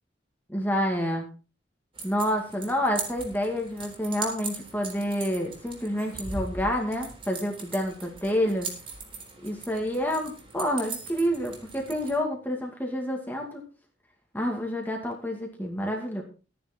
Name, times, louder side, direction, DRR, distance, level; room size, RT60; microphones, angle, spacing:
voice 1, 0.5-1.2 2.0-8.7 9.4-13.6 14.3-16.2, equal, 10° left, 1 dB, 2.2 m, -28 dB
sound 1, 2.0-12.2, right 3 dB, 30° right, 3.8 m, -40 dB
14.0 x 10.0 x 4.4 m, 0.34 s
head